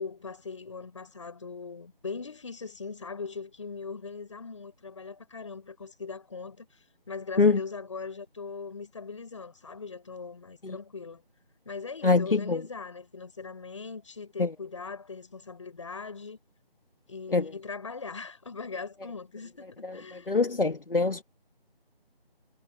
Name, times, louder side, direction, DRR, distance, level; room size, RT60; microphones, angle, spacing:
voice 1, 0.0-6.7 7.1-11.2 11.6-16.4 17.1-20.4, left 4 dB, 30° left, 7.9 m, -40 dB
voice 2, 12.0-12.6 17.3-17.4 20.3-21.2, left 4 dB, 65° left, 2.3 m, -23 dB
figure-of-eight pair, 170°, 30 cm